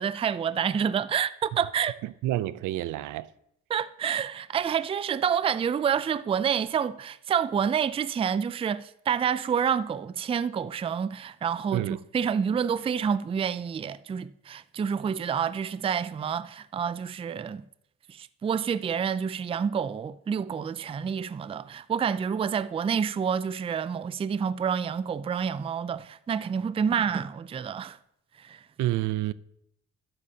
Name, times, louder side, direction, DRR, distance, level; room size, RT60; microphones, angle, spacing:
voice 1, 0.0-1.9 3.7-17.6 18.1-28.0 28.4-28.6, right 7 dB, 20° right, 0.3 m, -28 dB
voice 2, 2.2-3.3 11.7-12.0 28.8-29.3, right 15 dB, 80° right, 0.5 m, -28 dB
12.0 x 10.0 x 2.8 m
cardioid pair, 90°, 30 cm